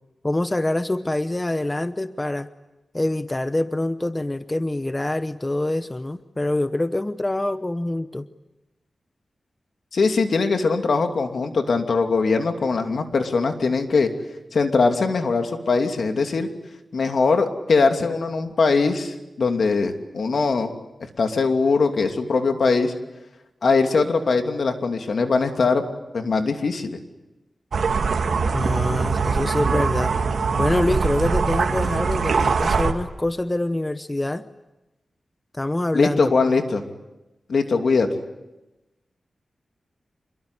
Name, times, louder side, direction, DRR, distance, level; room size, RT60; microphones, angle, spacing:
voice 1, 0.2-2.5 2.9-8.3 28.5-30.1 30.6-34.4 35.5-36.3, left 1 dB, 20° left, 11 dB, 0.9 m, -25 dB
voice 2, 9.9-14.1 14.5-16.5 16.9-20.7 21.0-22.9 23.6-25.8 26.1-27.0 35.9-36.8 37.5-38.1, left 4 dB, 70° left, 5 dB, 2.8 m, -21 dB
sound 1, 27.7-32.9, right 5 dB, 85° right, 2.1 m, -22 dB
27.0 x 22.5 x 9.9 m, 1.0 s
wide cardioid pair, 90°, 0 cm